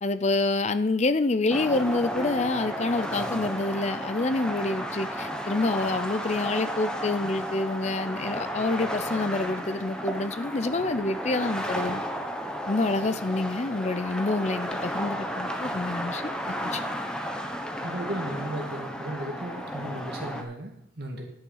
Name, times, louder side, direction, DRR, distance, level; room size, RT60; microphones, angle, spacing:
voice 1, 0.0-12.0 12.7-16.8, left 2 dB, 35° left, 12 dB, 0.5 m, -27 dB
sound 1, 1.5-20.4, equal, 5° left, 1.1 m, -33 dB
voice 2, 17.8-21.3, right 1 dB, 55° right, 2 dB, 2.1 m, -35 dB
11.0 x 6.9 x 5.6 m, 0.73 s
head